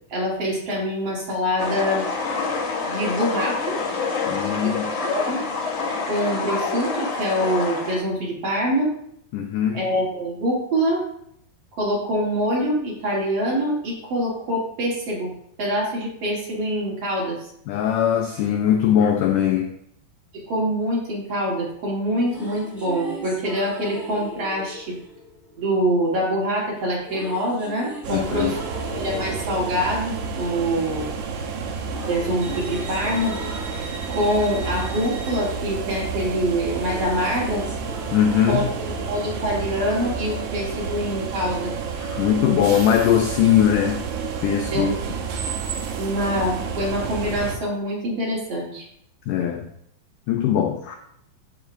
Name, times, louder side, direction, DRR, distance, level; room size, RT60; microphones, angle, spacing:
voice 1, 0.1-2.0 2.8-3.8 4.6-5.4 6.1-8.9 9.7-11.0 11.7-15.3 15.6-17.5 20.3-25.0 25.6-28.7 28.9-31.1 32.0-33.4 33.7-37.7 38.5-41.7 44.7-45.0 46.0-48.8, equal, 50° right, -4 dB, 2.2 m, -25 dB
sound 1, 1.6-8.0, left 4 dB, 60° left, 1.8 m, -27 dB
voice 2, 4.3-4.9 9.3-9.8 17.7-19.7 28.1-28.5 38.1-38.7 42.0-44.0 44.4-44.9 49.3-49.7 50.3-51.0, left 9 dB, 80° left, 4 dB, 1.8 m, -20 dB
sound 2, 22.0-26.2 27.0-31.3 31.5-40.0, equal, ahead, 2.9 m, -39 dB
sound 3, 28.0-47.6, right 5 dB, 70° right, 1.9 m, -30 dB
13.5 x 5.0 x 2.6 m, 0.71 s
omnidirectional pair, 4.3 m